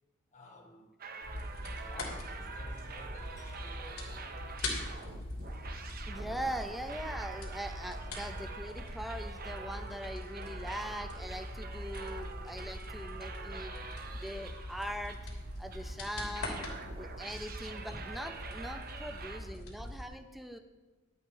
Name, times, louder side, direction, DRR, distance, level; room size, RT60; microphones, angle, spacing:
voice 1, 0.3-0.9 1.8-4.2 8.0-8.1 8.6-8.7 11.7-11.8 12.1-12.2 15.8-16.1 17.3-17.6 19.0-19.2 19.5-19.6, left 2 dB, 35° left, 1 dB, 1.2 m, -54 dB
sound 1, 1.0-15.9 16.3-19.4, right 4 dB, 45° right, 0.8 m, -46 dB
sound 2, 1.2-20.1, left 1 dB, 85° left, 3.0 m, -42 dB
voice 2, 6.1-13.7 14.2-15.2 15.6-16.7 17.0-20.6, equal, ahead, 7 dB, 0.7 m, -41 dB
11.5 x 8.3 x 4.7 m, 1.2 s
head